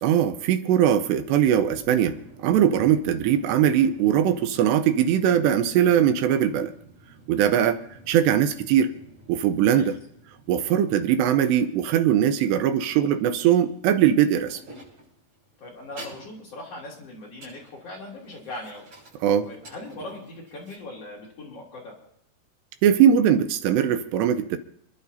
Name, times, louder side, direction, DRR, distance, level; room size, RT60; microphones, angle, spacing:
voice 1, 0.0-6.7 7.3-7.8 8.1-8.9 9.3-9.9 10.5-14.6 19.2-19.5 22.8-24.6, right 9 dB, 80° right, 9 dB, 2.9 m, -21 dB
sound 1, 1.3-20.8, right 1 dB, 40° right, 8.5 m, -49 dB
voice 2, 15.6-18.9 19.4-21.9, left 2 dB, 40° left, -3 dB, 3.3 m, -40 dB
28.5 x 11.5 x 2.7 m, 0.73 s
omnidirectional pair, 5.0 m